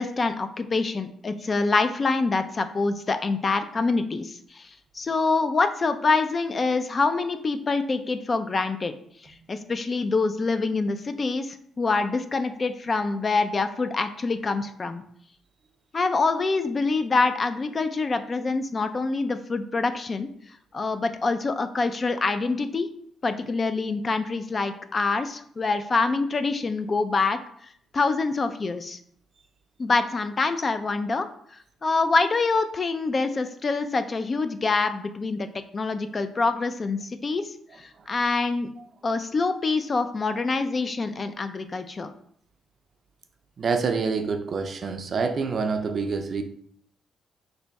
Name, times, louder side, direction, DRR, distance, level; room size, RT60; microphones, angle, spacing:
voice 1, 0.0-4.7 5.0-9.0 9.2-15.0 15.9-20.3 20.7-22.9 23.2-27.4 27.9-29.0 29.8-31.3 31.8-35.5 35.7-38.7 39.0-42.1, left 3 dB, 35° left, 10 dB, 0.3 m, -25 dB
voice 2, 43.6-46.4, right 4 dB, 45° right, 7 dB, 0.4 m, -26 dB
3.3 x 2.6 x 4.0 m, 0.65 s
cardioid pair, 90°, 0 cm